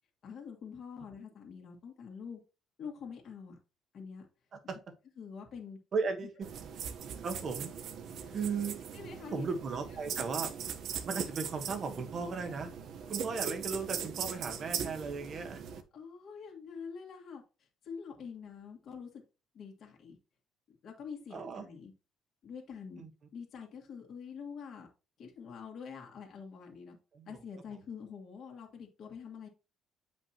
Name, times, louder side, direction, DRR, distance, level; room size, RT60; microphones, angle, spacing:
voice 1, 0.2-2.4 2.8-3.6 3.9-4.3 5.2-5.8 8.2-8.4 8.9-9.5 15.9-17.4 17.8-19.2 19.5-20.2 20.8-21.9 22.4-23.0 23.3-24.9 25.2-27.0 27.3-29.5, left 6 dB, 50° left, 2.2 m, -46 dB
voice 2, 5.9-6.5 7.2-7.7 8.3-8.8 9.3-10.5 11.0-12.7 13.1-15.8 21.3-21.6 23.0-23.1 27.1-27.4, right 5 dB, 40° right, 1.2 m, -36 dB
sound 1, 6.4-15.8, right 7 dB, 55° right, 1.0 m, -40 dB
8.4 x 5.3 x 2.9 m
cardioid pair, 140°, 0 cm